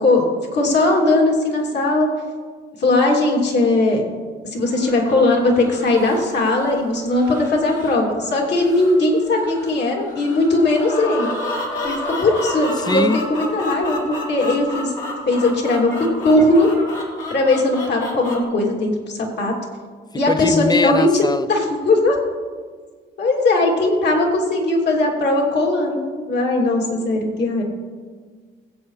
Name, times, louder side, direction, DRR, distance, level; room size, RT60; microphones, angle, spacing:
voice 1, 0.0-2.1 2.8-4.0 4.5-11.3 11.8-14.9 15.3-16.7 17.3-19.5 20.1-22.2 23.2-27.6, left 2 dB, 60° left, 2.9 m, -19 dB
sound 1, 4.7-18.4, left 1 dB, 75° left, 3.2 m, -31 dB
voice 2, 12.8-13.2 20.3-21.5, left 3 dB, 20° left, 0.4 m, -21 dB
21.5 x 8.4 x 3.3 m
cardioid pair, 90°, 20 cm